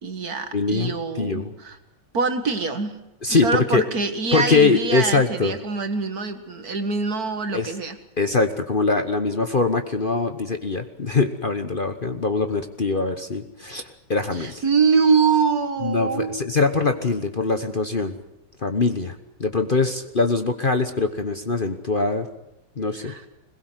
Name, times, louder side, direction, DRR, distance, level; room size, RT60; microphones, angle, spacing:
voice 1, 0.0-1.8 2.1-3.0 3.3-8.0 14.3-16.4 23.0-23.2, right 5 dB, 60° right, 8 dB, 2.2 m, -24 dB
voice 2, 0.5-1.5 3.2-3.8 4.3-5.5 7.5-7.7 8.2-14.6 15.8-18.2 18.6-22.3 22.8-23.1, left 3 dB, 35° left, 8 dB, 1.1 m, -23 dB
22.0 x 20.5 x 8.1 m, 0.87 s
omnidirectional pair, 1.8 m